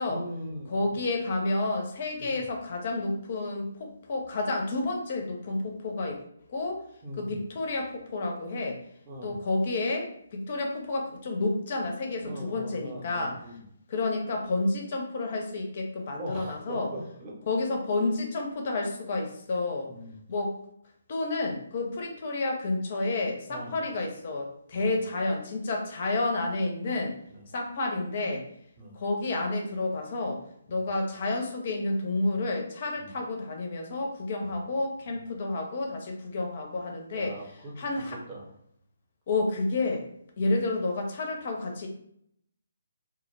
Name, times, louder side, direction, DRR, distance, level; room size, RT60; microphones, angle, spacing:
voice 1, 0.1-1.0 2.2-2.4 7.0-7.4 9.1-9.4 12.2-13.6 16.2-17.3 19.9-20.2 23.5-23.8 24.7-25.0 27.3-27.5 28.8-29.0 30.7-30.9 33.0-33.2 34.4-34.6 35.1-35.2 37.1-38.5 40.4-40.5, right 1 dB, 25° right, -3 dB, 0.7 m, -41 dB
voice 2, 0.7-6.2 6.5-6.8 7.2-8.8 9.2-13.3 13.9-16.9 17.5-19.9 20.3-20.5 21.1-27.1 27.5-28.4 29.0-30.4 30.7-37.3 37.8-38.2 39.3-40.0 40.4-41.9, left 2 dB, 40° left, 2 dB, 0.4 m, -30 dB
2.2 x 2.0 x 3.1 m, 0.70 s
figure-of-eight pair, 140°, 0 cm